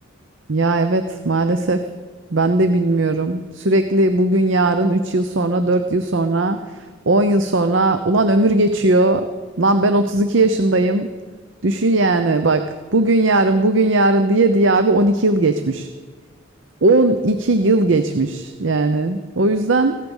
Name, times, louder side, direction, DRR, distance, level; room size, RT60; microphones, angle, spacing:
voice 1, 0.5-1.8 2.3-9.2 9.6-11.1 11.6-12.7 12.9-15.9 16.8-20.0, right 2 dB, 65° right, 8 dB, 0.8 m, -17 dB
16.0 x 11.5 x 7.2 m, 1.4 s
head